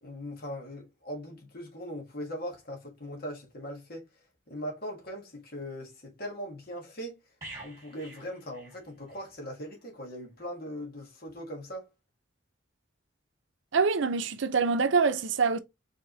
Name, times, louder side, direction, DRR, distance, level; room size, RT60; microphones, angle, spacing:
voice 1, 0.0-4.0 4.5-7.2 7.6-11.9, equal, 50° left, 1.6 m, -40 dB
sound 1, 7.4-9.3 9.6-9.8, right 2 dB, 15° right, 2.1 m, -47 dB
voice 2, 13.7-15.6, right 5 dB, 75° right, 0.6 m, -25 dB
4.7 x 3.6 x 3.0 m
head